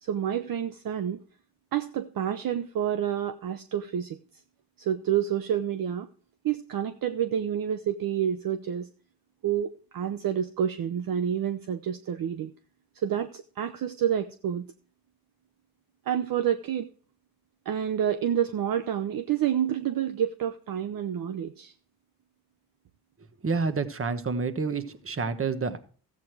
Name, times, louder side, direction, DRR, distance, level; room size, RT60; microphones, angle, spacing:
voice 1, 0.0-1.2 1.7-4.2 4.8-6.1 6.4-8.9 9.4-12.5 12.9-14.7 16.1-16.9 17.7-21.7, right 9 dB, 55° right, 10 dB, 0.8 m, -28 dB
voice 2, 23.4-25.8, right 4 dB, 30° right, 11 dB, 1.3 m, -28 dB
14.0 x 8.4 x 4.7 m, 0.43 s
cardioid pair, 85°, 42 cm